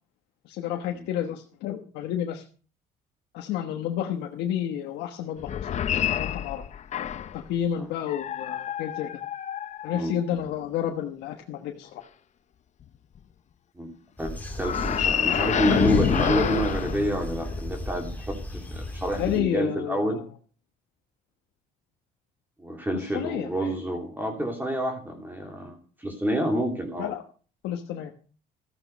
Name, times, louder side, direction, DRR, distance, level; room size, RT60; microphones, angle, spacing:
voice 1, 0.4-2.4 3.3-5.7 6.2-6.6 7.3-9.1 9.8-12.0 19.2-20.2 22.9-23.7 27.0-27.2 27.6-28.1, left 10 dB, 85° left, 3 dB, 1.3 m, -30 dB
sound 1, 5.4-7.4 8.1-10.5 14.6-17.7, left 9 dB, 45° left, 0.8 m, -27 dB
sound 2, 14.2-19.4, left 1 dB, 10° left, 2.6 m, -35 dB
voice 2, 14.6-20.2 22.6-27.1, right 1 dB, 10° right, 2 dB, 2.9 m, -28 dB
14.0 x 9.2 x 5.2 m, 0.40 s
cardioid pair, 110°, 17 cm